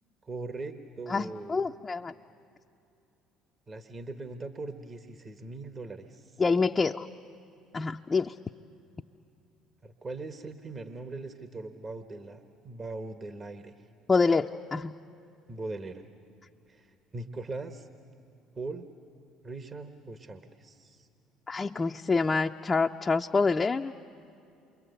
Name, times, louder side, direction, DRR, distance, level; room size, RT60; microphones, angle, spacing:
voice 1, 0.2-1.7 3.7-6.4 9.8-13.7 15.5-16.0 16.7-17.9 18.5-18.9 19.4-21.1, right 3 dB, 35° right, 7 dB, 1.3 m, -40 dB
voice 2, 1.1-2.1 6.4-7.1 7.7-8.3 14.1-14.9 21.5-24.1, left 4 dB, 25° left, 3 dB, 0.6 m, -26 dB
28.5 x 24.0 x 8.0 m, 2.6 s
hypercardioid pair, 65°, 0 cm